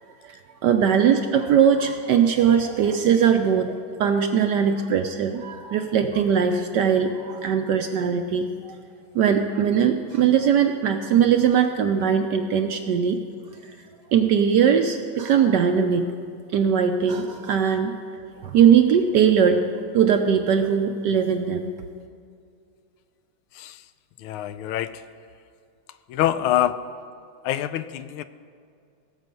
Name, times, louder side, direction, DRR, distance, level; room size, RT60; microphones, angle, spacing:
voice 1, 0.2-8.7 9.1-13.2 14.1-16.1 16.5-17.9 18.4-19.6 19.9-21.7, right 7 dB, 70° right, 6 dB, 1.0 m, -20 dB
voice 2, 24.2-25.0 26.1-26.8 27.4-28.2, left 12 dB, 85° left, 12 dB, 1.5 m, -25 dB
18.5 x 7.4 x 5.3 m, 2.3 s
omnidirectional pair, 2.3 m